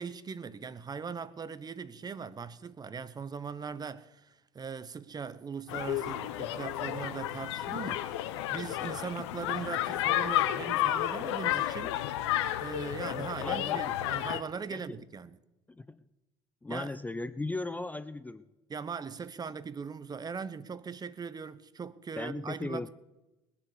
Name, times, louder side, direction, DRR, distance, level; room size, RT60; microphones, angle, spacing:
voice 1, 0.0-12.0 12.6-15.4 16.7-16.9 18.7-22.9, right 6 dB, 25° right, 1.0 m, -40 dB
sound 1, 5.7-14.4, left 13 dB, 80° left, 0.9 m, -32 dB
voice 2, 13.4-13.8 14.7-14.9 15.7-16.0 16.6-18.5 22.2-22.9, left 2 dB, 10° left, 0.6 m, -37 dB
20.5 x 7.1 x 6.7 m
hypercardioid pair, 75°, 14 cm